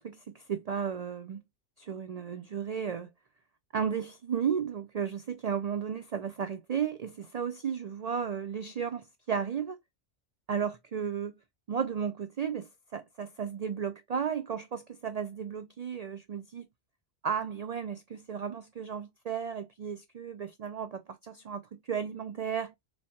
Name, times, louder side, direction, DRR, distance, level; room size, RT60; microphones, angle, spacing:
voice 1, 0.0-1.4 1.8-3.1 3.7-9.8 10.5-11.4 11.7-16.7 17.2-22.8, right 7 dB, 85° right, 0.3 m, -34 dB
3.4 x 3.3 x 2.8 m
omnidirectional pair, 1.2 m